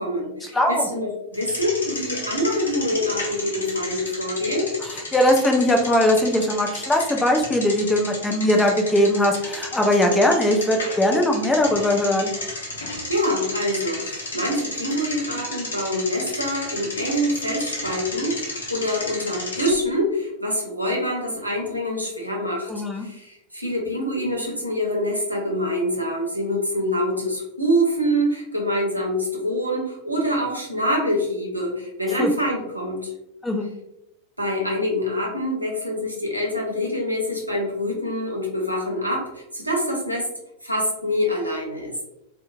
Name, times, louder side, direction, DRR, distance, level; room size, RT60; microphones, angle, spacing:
voice 1, 0.0-4.7 13.1-33.1 34.4-40.3 40.6-41.9, equal, 85° right, -1 dB, 0.7 m, -25 dB
voice 2, 0.5-0.9 5.1-12.3 22.7-23.1 32.2-32.3 33.4-33.7, left 1 dB, 10° left, 2 dB, 0.5 m, -20 dB
Bicycle, 1.3-19.7, left 2 dB, 70° left, 0.7 m, -33 dB
3.0 x 2.1 x 2.3 m, 0.83 s
figure-of-eight pair, 90°, 0 cm